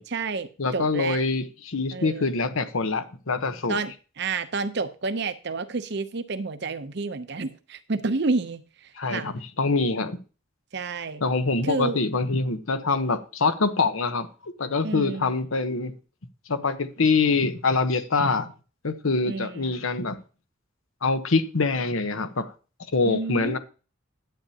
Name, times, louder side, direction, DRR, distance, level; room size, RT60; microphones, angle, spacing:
voice 1, 0.0-1.2 1.9-2.3 3.7-9.3 10.7-11.2 11.6-12.0 14.8-15.3 19.2-19.7 23.0-23.6, right 3 dB, 55° right, 0.7 m, -30 dB
voice 2, 0.6-3.8 9.0-10.2 11.2-15.9 16.5-18.5 18.8-20.2 21.0-22.5 22.9-23.6, left 3 dB, 80° left, 1.0 m, -25 dB
11.5 x 8.5 x 2.9 m
head